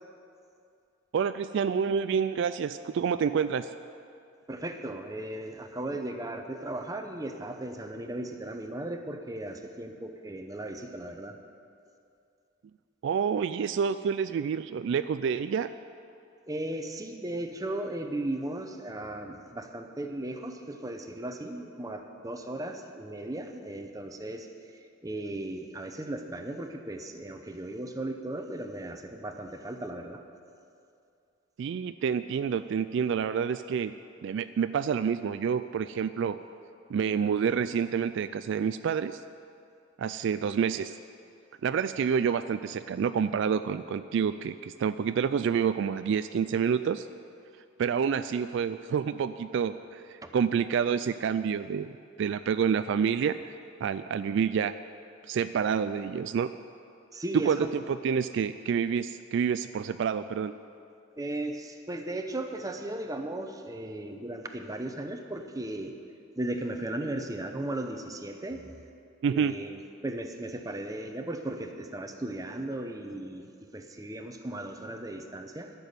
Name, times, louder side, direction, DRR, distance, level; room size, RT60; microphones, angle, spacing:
voice 1, 1.1-3.7 13.0-15.7 31.6-33.9 34.2-36.4 36.9-39.2 40.0-41.0 41.6-47.1 47.8-53.4 53.8-54.7 55.2-56.5 57.5-57.6 57.9-60.5 69.2-69.5, right 7 dB, 60° right, 12 dB, 0.3 m, -28 dB
voice 2, 4.5-11.4 16.5-24.5 25.0-30.2 50.2-50.3 57.1-57.7 61.2-65.9 66.4-68.7 69.3-75.7, right 1 dB, 15° right, 5 dB, 0.8 m, -36 dB
12.5 x 7.0 x 9.4 m, 2.5 s
head